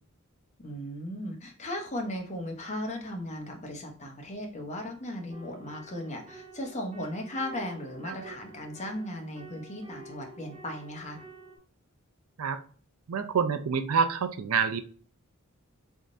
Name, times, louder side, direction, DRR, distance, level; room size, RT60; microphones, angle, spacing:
voice 1, 0.6-11.2, left 1 dB, 35° left, 2 dB, 0.9 m, -37 dB
sound 1, 5.3-11.6, right 2 dB, 25° right, 0.6 m, -49 dB
voice 2, 13.1-14.8, right 6 dB, 85° right, 9 dB, 0.5 m, -27 dB
4.2 x 3.5 x 2.6 m, 0.43 s
head